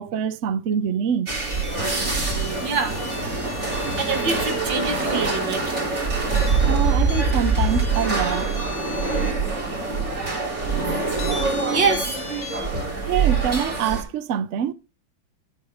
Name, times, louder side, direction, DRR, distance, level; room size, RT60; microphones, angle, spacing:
voice 1, 0.0-1.3 6.6-8.5 10.2-10.6 13.1-14.7, right 8 dB, 80° right, 0.6 m, -25 dB
sound 1, 1.3-14.0, right 3 dB, 35° right, 3.5 m, -24 dB
sound 2, 1.5-4.6 6.4-9.3 10.0-10.1 11.2-12.6, left 4 dB, 55° left, 4.2 m, -38 dB
voice 2, 2.6-3.0 4.0-5.8 9.8-10.2 11.3-11.4 11.7-12.2 12.6-13.3, right 5 dB, 60° right, 2.5 m, -26 dB
12.0 x 11.0 x 3.6 m
omnidirectional pair, 2.2 m